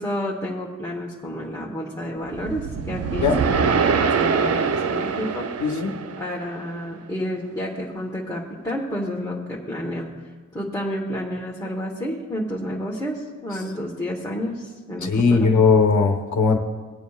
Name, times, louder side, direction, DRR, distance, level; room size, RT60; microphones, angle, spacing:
voice 1, 0.0-5.5 6.2-10.1 10.5-15.6, equal, 10° left, -5 dB, 1.0 m, -30 dB
sound 1, 2.3-6.7, right 6 dB, 55° right, 0.5 m, -24 dB
voice 2, 5.6-5.9 15.0-16.6, left 5 dB, 70° left, 2 dB, 0.9 m, -18 dB
19.5 x 9.1 x 2.3 m, 1.4 s
wide cardioid pair, 150°, 30 cm